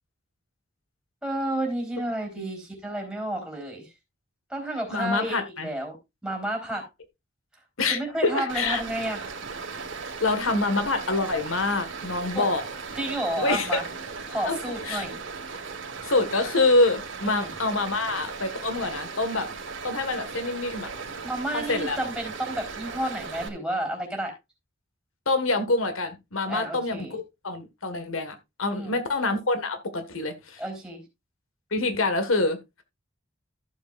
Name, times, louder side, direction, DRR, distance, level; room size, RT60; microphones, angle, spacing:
voice 1, 1.2-3.9 4.5-6.0 6.2-6.9 7.9-9.3 12.4-12.5 13.0-13.8 14.3-15.2 17.2-17.5 21.2-24.3 26.5-27.1 28.7-28.9 30.6-31.0, right 1 dB, 5° right, 3.9 m, -31 dB
voice 2, 4.9-5.7 7.8-8.8 10.2-12.6 13.4-13.8 14.4-14.6 14.8-15.0 16.0-19.5 19.8-20.9 21.5-22.0 25.2-30.6 31.7-32.6, left 2 dB, 85° left, 1.6 m, -26 dB
Stream, 8.5-23.5, right 4 dB, 65° right, 2.1 m, -37 dB
14.5 x 7.3 x 2.5 m
head